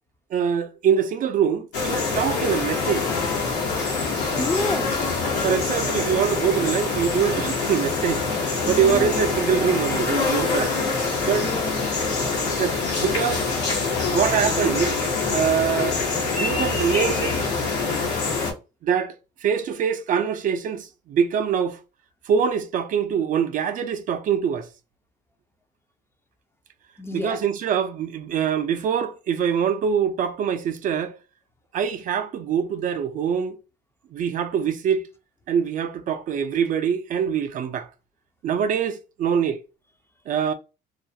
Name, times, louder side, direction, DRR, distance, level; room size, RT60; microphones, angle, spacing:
voice 1, 0.3-3.1 5.4-10.7 11.2-11.5 12.6-13.5 14.1-15.0 15.3-16.0 16.3-17.4 18.8-19.1 19.4-21.8 22.3-24.7 27.1-31.2 31.7-33.6 34.1-35.1 35.5-37.9 38.4-39.6 40.3-40.5, right 7 dB, 50° right, 0.4 m, -24 dB
Rural - Insects and birds, 1.7-18.5, left 4 dB, 85° left, 1.0 m, -25 dB
voice 2, 4.4-5.0 8.6-9.3 11.4-11.8 27.0-27.4, left 2 dB, 15° left, 0.4 m, -29 dB
2.4 x 2.1 x 2.6 m
cardioid pair, 110°, 17 cm